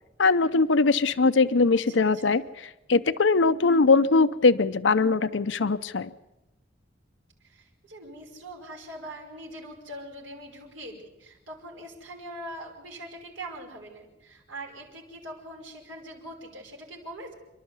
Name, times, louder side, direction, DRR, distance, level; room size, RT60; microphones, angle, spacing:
voice 1, 0.2-6.1, left 3 dB, 75° left, 13 dB, 0.7 m, -21 dB
voice 2, 1.9-2.4 7.4-17.3, right 1 dB, 90° right, -1 dB, 5.3 m, -42 dB
28.0 x 12.0 x 8.2 m, 0.98 s
head